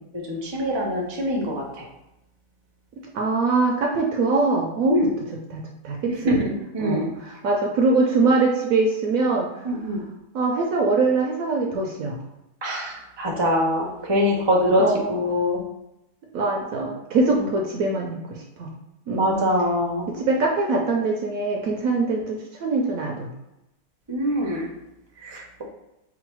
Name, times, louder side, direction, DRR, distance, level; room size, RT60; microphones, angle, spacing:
voice 1, 0.3-1.8 4.9-5.1 6.1-7.1 9.6-10.0 12.6-14.8 15.1-15.6 19.2-20.1 24.1-24.7 25.2-25.6, equal, 30° right, -2 dB, 0.4 m, -24 dB
voice 2, 3.1-5.0 5.3-6.4 6.8-9.5 10.3-12.1 14.8-15.2 16.3-18.7 19.1-19.3 20.1-23.3, right 3 dB, 65° right, 0 dB, 0.9 m, -23 dB
3.9 x 2.2 x 4.5 m, 0.90 s
omnidirectional pair, 1.9 m